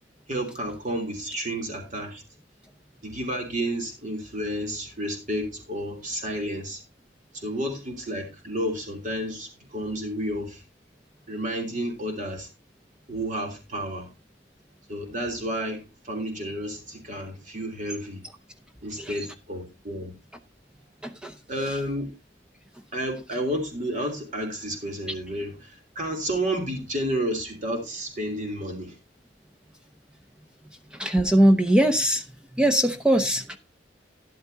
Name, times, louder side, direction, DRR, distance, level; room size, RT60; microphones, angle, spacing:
voice 1, 0.3-2.2 3.0-6.8 7.3-10.6 11.3-12.5 13.1-14.1 14.9-18.2 18.8-20.1 21.5-22.1 22.9-28.9, right 1 dB, 45° right, 3.1 m, -31 dB
voice 2, 21.0-21.3 31.0-32.2 32.6-33.6, right 1 dB, 5° right, 0.7 m, -21 dB
12.5 x 11.0 x 2.8 m
head